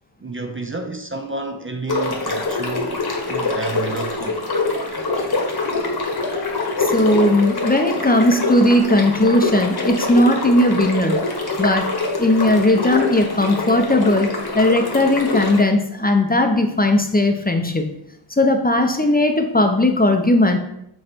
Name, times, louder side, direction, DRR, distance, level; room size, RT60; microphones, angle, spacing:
voice 1, 0.2-3.0 3.3-4.4, right 3 dB, 30° right, 0.6 m, -30 dB
sound 1, 1.9-15.6, left 3 dB, 60° left, 1.4 m, -24 dB
voice 2, 6.8-11.2 11.6-11.9 12.2-14.3 14.5-17.9 18.3-20.6, left 1 dB, 20° left, 0.7 m, -17 dB
7.6 x 3.2 x 4.4 m
wide cardioid pair, 80°, 43 cm